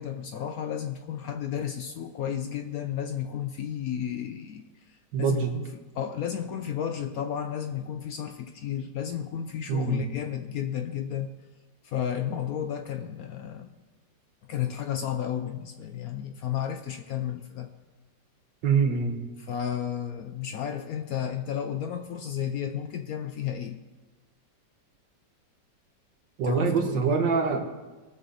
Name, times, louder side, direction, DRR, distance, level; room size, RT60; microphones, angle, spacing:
voice 1, 0.0-11.3 11.8-13.8 14.5-17.7 19.5-23.8 26.4-27.2, left 9 dB, 70° left, 7 dB, 0.9 m, -32 dB
voice 2, 5.1-5.5 9.7-10.1 18.6-19.2 26.4-27.6, right 5 dB, 85° right, 3 dB, 1.9 m, -24 dB
18.5 x 6.8 x 3.9 m, 1.2 s
omnidirectional pair, 2.0 m